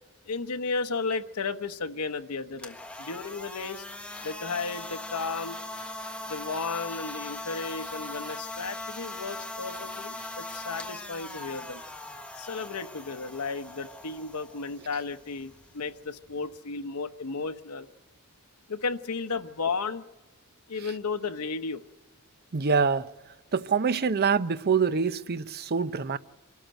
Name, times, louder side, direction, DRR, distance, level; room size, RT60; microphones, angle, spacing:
voice 1, 0.2-3.9 4.2-5.6 6.3-11.8 12.4-17.9 18.7-20.0 20.7-21.8, left 4 dB, 90° left, 0.9 m, -34 dB
sound 1, 2.6-16.5, left 2 dB, 5° left, 1.5 m, -40 dB
voice 2, 22.5-23.1 23.5-26.2, right 5 dB, 45° right, 0.6 m, -25 dB
25.0 x 13.0 x 9.0 m
head